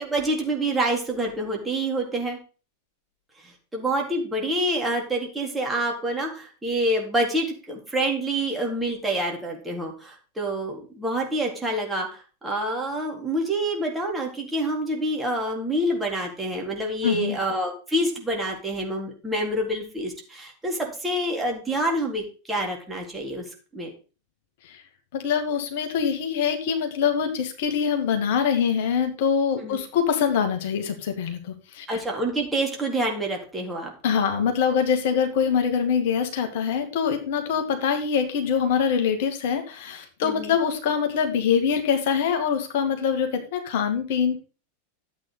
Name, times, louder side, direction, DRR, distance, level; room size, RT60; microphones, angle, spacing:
voice 1, 0.0-2.4 3.7-23.4 23.7-23.9 29.6-29.8 31.9-33.9 40.2-40.6, right 1 dB, 10° right, 0 dB, 4.0 m, -27 dB
voice 2, 17.0-17.4 24.7-24.8 25.1-32.0 34.0-44.4, left 7 dB, 50° left, 6 dB, 2.3 m, -24 dB
12.0 x 8.7 x 4.0 m, 0.34 s
figure-of-eight pair, 90°, 0 cm